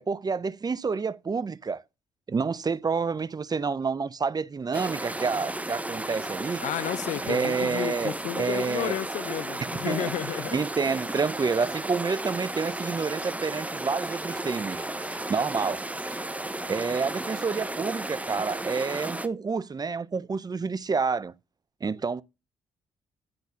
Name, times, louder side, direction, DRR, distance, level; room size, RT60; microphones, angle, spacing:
voice 1, 0.0-1.8 2.3-6.6 7.2-9.0 9.9-10.1 10.5-15.8 16.7-21.3 21.8-22.2, right 5 dB, 30° right, 0.6 m, -29 dB
sound 1, 4.7-19.3, right 1 dB, 10° right, 0.9 m, -34 dB
voice 2, 6.6-10.6, left 13 dB, 65° left, 0.5 m, -32 dB
10.5 x 4.0 x 5.1 m
hypercardioid pair, 45°, 13 cm